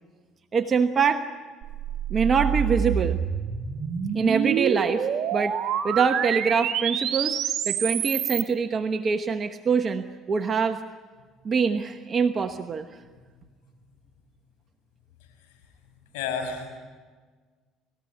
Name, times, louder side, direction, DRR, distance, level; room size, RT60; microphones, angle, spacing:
voice 1, 0.5-1.3 2.1-3.2 4.1-5.6 5.8-7.4 7.7-10.8 11.4-12.9, right 5 dB, 40° right, 7 dB, 1.1 m, -24 dB
sound 1, 1.6-8.5, right 9 dB, 55° right, 1.8 m, -27 dB
voice 2, 16.1-16.7, left 6 dB, 80° left, 4 dB, 5.9 m, -30 dB
29.5 x 15.0 x 9.8 m, 1.5 s
hypercardioid pair, 70°, 0 cm